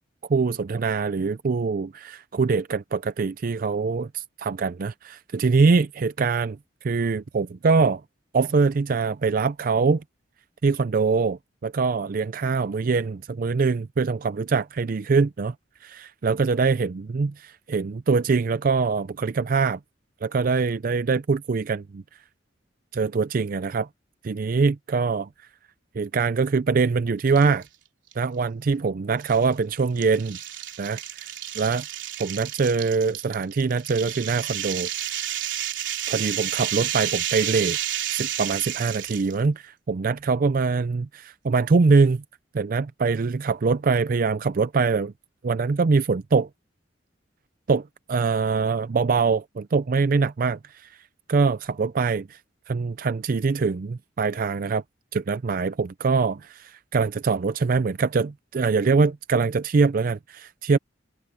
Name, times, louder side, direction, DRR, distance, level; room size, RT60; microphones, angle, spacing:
voice 1, 0.3-6.6 6.8-8.0 8.3-10.0 10.6-15.5 15.8-19.8 20.2-22.0 22.9-23.9 24.2-25.3 26.0-27.6 28.2-30.4 30.8-31.8 32.2-35.1 36.1-37.8 38.1-42.2 42.5-45.1 45.4-46.5 47.7-50.9 51.3-52.4 52.7-54.8 55.1-60.8, right 4 dB, 50° right, 0.4 m, -23 dB
sound 1, 27.3-27.7 28.1-28.2 29.2-39.3, right 11 dB, 80° right, 3.3 m, -31 dB
head